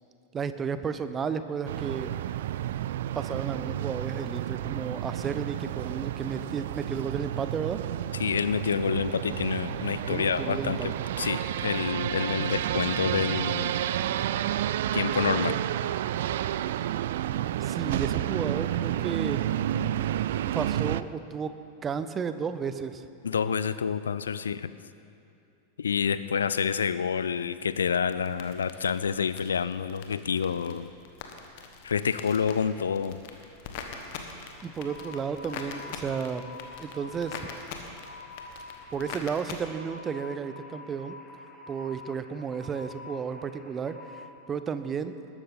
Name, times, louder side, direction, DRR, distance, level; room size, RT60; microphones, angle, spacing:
voice 1, 0.3-2.1 3.1-7.8 10.1-10.9 17.6-19.4 20.5-21.6 21.8-23.1 34.6-36.4 36.8-37.4 38.9-41.2 41.7-45.2, right 6 dB, 20° right, 11 dB, 0.7 m, -33 dB
sound 1, 1.7-21.0, right 12 dB, 55° right, 0.3 m, -30 dB
voice 2, 8.2-13.8 14.9-15.6 23.2-24.7 25.8-30.9 31.8-33.2, left 6 dB, 70° left, 14 dB, 0.5 m, -28 dB
sound 2, 27.6-39.6, left 5 dB, 50° left, 1.5 m, -44 dB
sound 3, 34.6-44.2, left 3 dB, 10° left, 2.0 m, -47 dB
20.5 x 12.0 x 4.1 m, 2.6 s
figure-of-eight pair, 90°, 0 cm